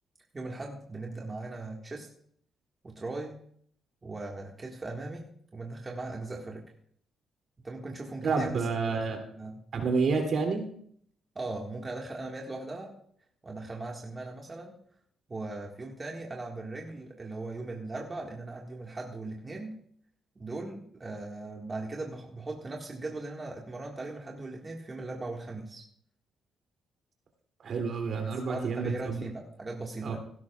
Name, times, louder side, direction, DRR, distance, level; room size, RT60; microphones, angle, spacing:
voice 1, 0.3-2.1 2.8-3.4 4.0-6.6 7.6-9.6 11.4-12.9 13.4-14.7 15.3-19.8 20.4-25.8 28.5-30.2, right 2 dB, 30° right, -1 dB, 1.9 m, -39 dB
voice 2, 8.2-9.2 9.7-10.6 27.6-29.2 30.0-30.1, right 4 dB, 60° right, 2 dB, 3.0 m, -29 dB
16.5 x 12.5 x 2.5 m, 0.64 s
cardioid pair, 85°, 0 cm